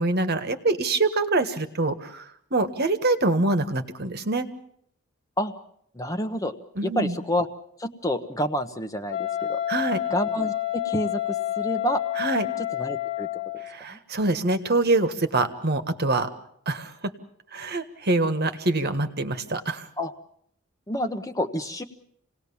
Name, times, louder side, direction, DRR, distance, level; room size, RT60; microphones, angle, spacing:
voice 1, 0.0-2.2 2.5-4.5 6.7-7.2 9.7-10.0 12.2-12.5 13.6-16.3 16.7-16.9 17.5-19.9, right 2 dB, 45° right, 9 dB, 1.6 m, -25 dB
voice 2, 5.9-6.5 6.8-7.5 7.8-9.6 10.1-12.0 12.8-13.3 13.9-14.0 20.0-20.1 20.9-21.8, equal, 15° left, 7 dB, 1.0 m, -28 dB
Wind instrument woodwind instrument, 9.1-13.8, left 13 dB, 55° left, 1.4 m, -29 dB
27.5 x 18.5 x 7.1 m, 0.69 s
head